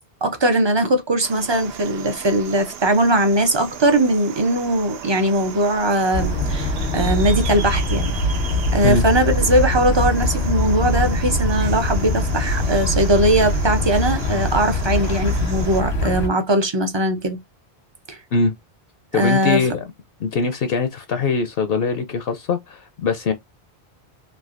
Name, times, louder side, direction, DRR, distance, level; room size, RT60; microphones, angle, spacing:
voice 1, 0.2-8.1 8.7-17.4 18.1-18.2 19.2-19.6, right 1 dB, 35° right, 0.5 m, -20 dB
sound 1, 1.2-15.8, right 8 dB, 75° right, 0.8 m, -37 dB
sound 2, 6.1-16.3, left 1 dB, 90° left, 1.3 m, -22 dB
voice 2, 19.1-19.8 20.2-23.3, left 4 dB, 70° left, 0.8 m, -22 dB
3.3 x 2.5 x 2.4 m
omnidirectional pair, 1.1 m